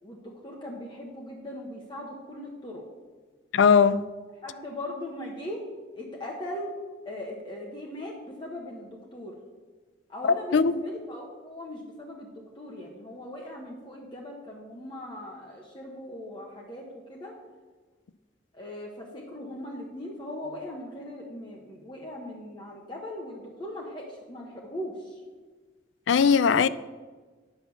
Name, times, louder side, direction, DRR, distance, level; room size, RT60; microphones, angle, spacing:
voice 1, 0.0-2.8 4.4-5.6 5.9-6.7 7.0-9.4 10.1-17.3 18.5-25.2, left 1 dB, 25° left, 1.1 m, -39 dB
voice 2, 3.5-4.0 10.5-10.7 26.1-26.7, left 6 dB, 75° left, 0.4 m, -19 dB
9.0 x 6.0 x 7.0 m
head